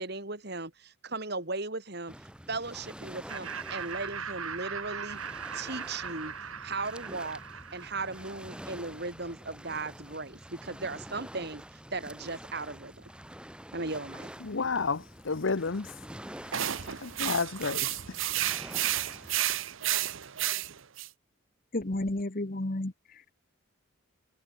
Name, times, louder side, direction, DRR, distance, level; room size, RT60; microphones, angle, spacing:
voice 1, 0.0-2.1 2.5-5.2 5.5-6.3 6.6-7.4 7.7-13.0 13.7-14.3, right 3 dB, 50° right, 2.9 m, -37 dB
Waves surf, 2.1-19.4, equal, 5° right, 2.8 m, -47 dB
Laughter, 3.3-8.6, right 6 dB, 85° right, 5.4 m, -40 dB
voice 2, 14.4-15.9 17.0-17.9, left 4 dB, 65° left, 0.8 m, -31 dB
sound 1, 16.5-21.1, right 13 dB, 70° right, 0.9 m, -31 dB
voice 3, 21.7-23.3, left 1 dB, 40° left, 1.2 m, -32 dB
head